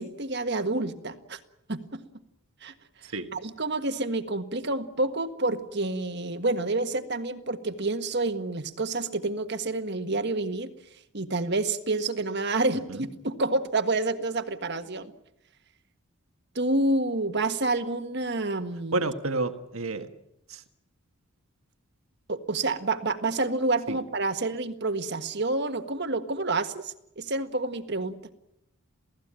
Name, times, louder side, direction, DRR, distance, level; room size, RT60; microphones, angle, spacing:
voice 1, 0.0-1.4 1.7-2.0 2.6-2.7 3.3-10.7 11.1-15.1 16.5-19.1 22.3-28.2, right 2 dB, 50° right, 9 dB, 1.6 m, -28 dB
voice 2, 18.9-20.1 20.5-20.6 23.9-24.0, right 2 dB, 70° right, 7 dB, 1.7 m, -29 dB
28.5 x 17.5 x 9.0 m, 0.84 s
head